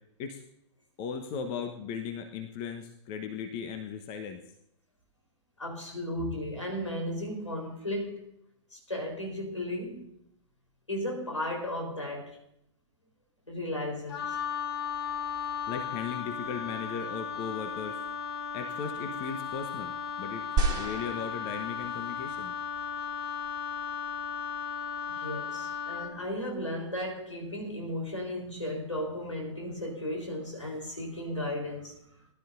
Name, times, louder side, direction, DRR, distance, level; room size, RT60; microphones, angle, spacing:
voice 1, 1.0-4.4 15.7-18.0 18.5-20.4 20.7-22.5, left 6 dB, 35° left, 1.2 m, -37 dB
voice 2, 5.6-8.3 8.7-10.1 10.9-12.4 13.5-14.4 25.1-32.0, left 1 dB, 80° left, 4.1 m, -35 dB
Wind instrument woodwind instrument, 14.1-26.2, left 7 dB, 55° left, 1.1 m, -36 dB
sound 1, 20.6-22.1 22.8-22.9, right 3 dB, 25° right, 1.9 m, -31 dB
19.5 x 12.0 x 2.7 m
figure-of-eight pair, 105°, 15 cm